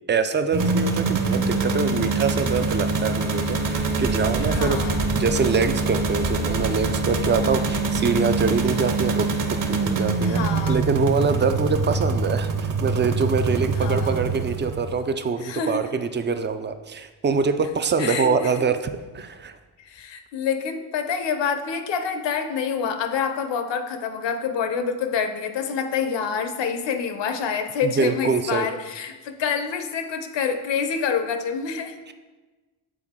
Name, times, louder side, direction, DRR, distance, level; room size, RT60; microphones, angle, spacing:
voice 1, 0.1-4.8 5.1-9.3 9.7-10.4 10.7-18.9 19.1-19.6 27.8-28.7, right 5 dB, 25° right, 9 dB, 0.4 m, -24 dB
sound 1, 0.5-15.0, right 3 dB, 40° right, 0.9 m, -24 dB
voice 2, 4.4-5.0 7.5-7.7 10.2-10.8 13.8-14.2 15.4-15.8 18.0-18.5 19.8-32.0, left 6 dB, 60° left, 8 dB, 0.8 m, -27 dB
7.7 x 3.9 x 3.6 m, 1.3 s
supercardioid pair, 75°, 48 cm